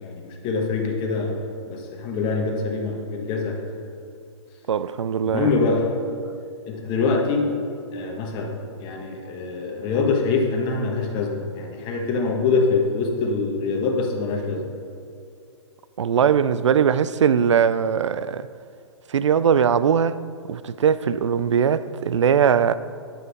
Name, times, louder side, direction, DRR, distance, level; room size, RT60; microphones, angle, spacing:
voice 1, 0.0-3.6 5.2-6.0 6.7-7.5 7.9-14.7, left 4 dB, 30° left, 1.5 m, -24 dB
voice 2, 4.7-5.5 16.0-18.5 19.1-20.2 20.5-22.7, right 7 dB, 80° right, 0.4 m, -20 dB
8.0 x 7.9 x 4.9 m
hypercardioid pair, 120°, 15 cm